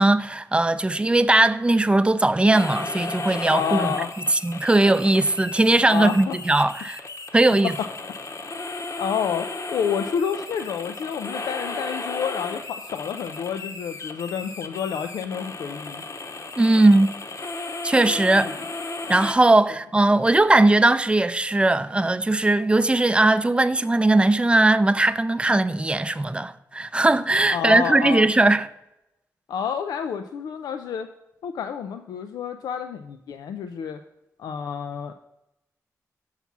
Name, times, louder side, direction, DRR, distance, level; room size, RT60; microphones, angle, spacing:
voice 1, 0.0-3.9 4.3-7.0 7.3-7.7 16.6-17.1 17.8-18.5 19.1-28.7, right 2 dB, 15° right, 0.4 m, -19 dB
sound 1, 2.5-19.3, left 3 dB, 50° left, 0.9 m, -34 dB
voice 2, 3.5-4.1 5.9-6.4 9.0-16.0 18.4-18.5 27.5-28.3 29.5-31.1 31.4-34.0 34.4-35.1, left 7 dB, 90° left, 0.4 m, -29 dB
5.8 x 5.7 x 5.8 m
cardioid pair, 55°, 6 cm